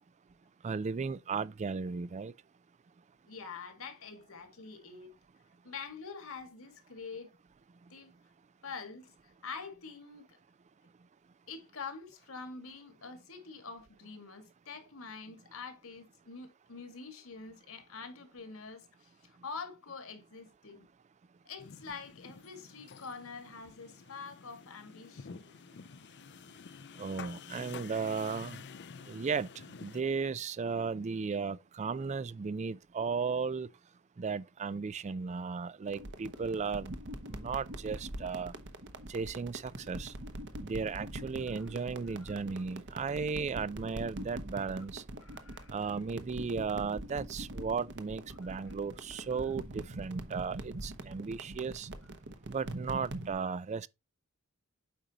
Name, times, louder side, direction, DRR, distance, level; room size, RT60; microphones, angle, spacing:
voice 1, 0.6-2.3 27.0-28.6 29.1-29.5 29.8-33.7 34.2-36.9 37.3-38.5 39.1-40.1 40.6-45.0 45.7-51.9 52.5-53.9, right 5 dB, 35° right, 0.4 m, -35 dB
voice 2, 3.3-5.1 5.6-7.4 7.9-8.1 8.6-10.4 11.5-20.9 21.5-25.6 28.9-29.0 41.5-41.7 42.1-42.4 45.2-45.9 48.4-48.7 49.4-49.5, left 5 dB, 70° left, 2.0 m, -46 dB
sound 1, 21.6-30.0, left 6 dB, 55° left, 0.5 m, -50 dB
sound 2, 35.9-53.3, right 1 dB, 55° right, 1.2 m, -43 dB
8.7 x 5.2 x 2.9 m
head